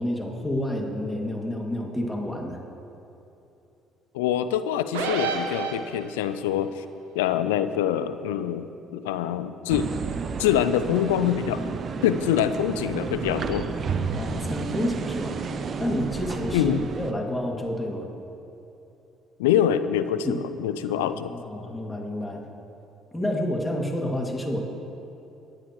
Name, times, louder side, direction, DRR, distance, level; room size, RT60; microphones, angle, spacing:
voice 1, 0.0-2.6 14.1-15.4 15.8-18.1 20.2-20.4 20.9-22.5 23.1-24.6, left 1 dB, 10° left, 0 dB, 2.4 m, -29 dB
voice 2, 4.1-6.8 7.1-8.7 8.9-9.9 10.4-11.6 12.0-13.7 16.5-16.8 19.4-21.3, left 10 dB, 85° left, 11 dB, 0.4 m, -25 dB
sound 1, 4.9-6.3, right 4 dB, 85° right, 1.2 m, -29 dB
sound 2, 9.7-17.1, right 5 dB, 50° right, 0.8 m, -31 dB
21.5 x 8.7 x 3.2 m, 2.9 s
hypercardioid pair, 60°, 0 cm